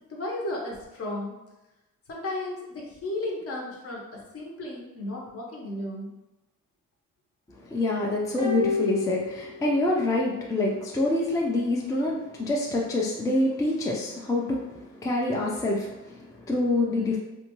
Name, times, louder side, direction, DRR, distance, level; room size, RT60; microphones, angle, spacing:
voice 1, 0.1-1.4 2.1-6.1, left 1 dB, 50° left, -2 dB, 0.8 m, -34 dB
voice 2, 7.7-17.2, left 2 dB, 10° left, -3 dB, 0.4 m, -26 dB
sound 1, 8.4-10.0 10.3-10.4, left 4 dB, 75° left, 1.0 m, -30 dB
2.6 x 2.2 x 2.9 m, 1.0 s
cardioid pair, 90°, 30 cm